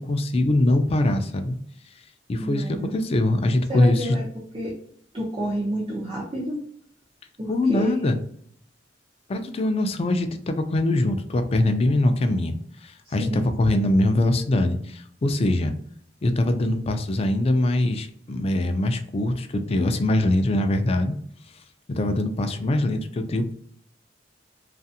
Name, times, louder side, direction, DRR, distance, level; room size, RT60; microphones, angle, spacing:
voice 1, 0.0-1.6 2.3-4.2 7.5-8.2 9.3-12.6 12.8-15.7 16.2-21.2 21.9-23.5, left 1 dB, 35° left, 7 dB, 0.3 m, -22 dB
voice 2, 2.4-3.0 3.7-4.8 5.1-6.6 7.4-8.1 13.0-13.4, equal, 30° right, -4 dB, 0.6 m, -30 dB
2.7 x 2.4 x 2.4 m, 0.64 s
head